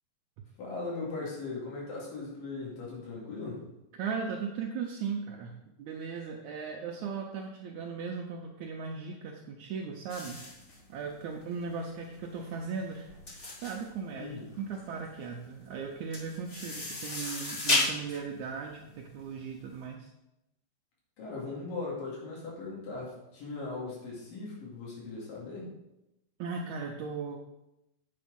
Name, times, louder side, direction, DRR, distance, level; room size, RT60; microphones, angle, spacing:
voice 1, 0.6-3.7 14.1-14.4 21.2-25.7, left 3 dB, 85° left, -5 dB, 4.0 m, -39 dB
voice 2, 3.9-10.4 10.9-13.1 13.6-20.1 26.4-27.4, right 5 dB, 75° right, 1 dB, 1.9 m, -37 dB
sound 1, 10.1-19.7, left 2 dB, 35° left, 1.1 m, -35 dB
8.7 x 5.8 x 5.3 m, 0.90 s
omnidirectional pair, 3.9 m